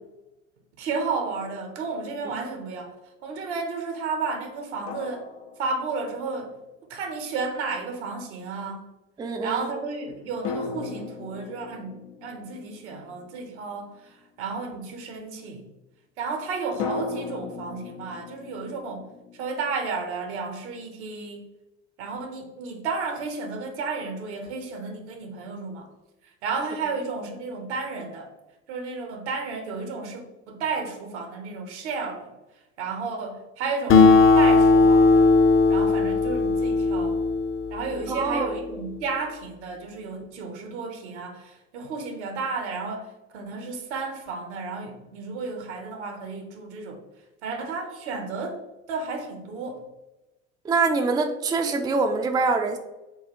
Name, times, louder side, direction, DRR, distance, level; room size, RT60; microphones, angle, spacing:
voice 1, 0.8-2.9 3.2-5.3 5.6-6.5 6.9-8.8 9.4-15.7 16.2-19.1 19.4-21.5 22.0-25.9 26.4-28.3 28.7-32.3 32.8-35.3 35.7-37.2 37.7-47.0 47.4-48.6 48.9-49.8, right 4 dB, 70° right, 4 dB, 0.9 m, -32 dB
sound 1, 4.9-6.4 10.4-14.1 16.8-19.5, left 4 dB, 80° left, 0.6 m, -37 dB
voice 2, 9.2-9.7 38.1-38.5 50.6-52.8, right 4 dB, 10° right, 5 dB, 0.4 m, -24 dB
Acoustic guitar, 33.9-38.7, left 3 dB, 35° left, 0.6 m, -18 dB
5.6 x 2.4 x 2.9 m, 1.0 s
figure-of-eight pair, 60°, 36 cm